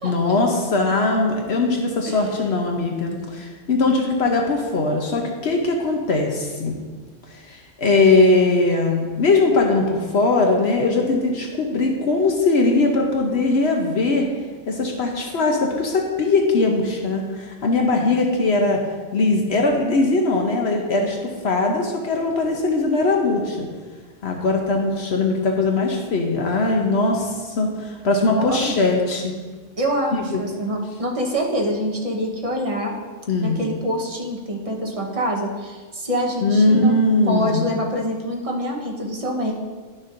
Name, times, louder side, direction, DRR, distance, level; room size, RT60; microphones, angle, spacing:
voice 1, 0.0-6.7 7.3-14.3 14.7-18.8 19.1-23.7 24.2-29.3 30.1-30.4 33.3-33.6 36.4-37.6, left 3 dB, 60° left, 1 dB, 1.0 m, -20 dB
voice 2, 28.4-28.8 29.8-32.9 33.4-37.0 37.2-39.5, equal, 30° right, -1 dB, 1.0 m, -25 dB
11.0 x 6.4 x 2.6 m, 1.5 s
omnidirectional pair, 1.3 m